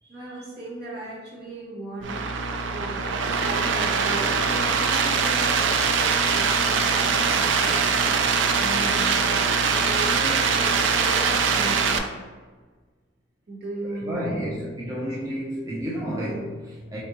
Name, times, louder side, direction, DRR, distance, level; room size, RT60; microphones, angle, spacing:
voice 1, 0.0-2.2 2.7-7.7 8.6-12.0 13.5-14.5, right 1 dB, 55° right, -6 dB, 1.5 m, -36 dB
sound 1, 2.0-12.0, right 5 dB, 80° right, 0.4 m, -22 dB
voice 2, 13.8-17.0, equal, 20° right, -6 dB, 0.5 m, -31 dB
4.2 x 3.4 x 2.9 m, 1.4 s
head